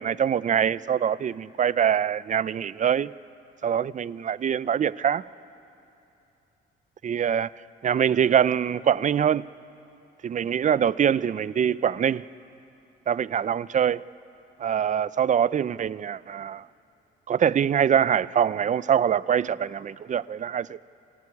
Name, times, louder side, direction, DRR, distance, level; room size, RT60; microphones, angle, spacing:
voice 1, 0.0-3.1 3.6-5.2 7.0-7.5 7.8-9.4 10.2-12.2 13.1-14.0 14.6-16.7 17.3-20.8, right 8 dB, 40° right, 0.5 m, -24 dB
27.5 x 16.5 x 9.7 m
cardioid pair, 90°, 20 cm